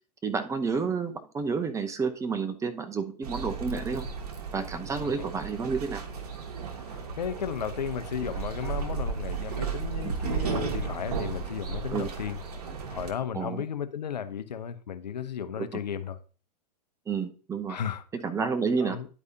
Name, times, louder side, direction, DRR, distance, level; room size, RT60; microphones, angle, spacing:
voice 1, 0.2-4.0 4.5-6.0 10.0-10.1 11.9-12.1 13.3-13.6 15.6-15.7 17.1-17.8 18.1-19.0, right 5 dB, 15° right, 0.8 m, -30 dB
sound 1, 3.2-13.1, right 5 dB, 65° right, 1.6 m, -34 dB
voice 2, 6.9-12.4 12.9-16.2 17.7-18.0 18.8-19.1, left 8 dB, 85° left, 0.7 m, -34 dB
11.0 x 4.8 x 2.8 m
hypercardioid pair, 115°, 21 cm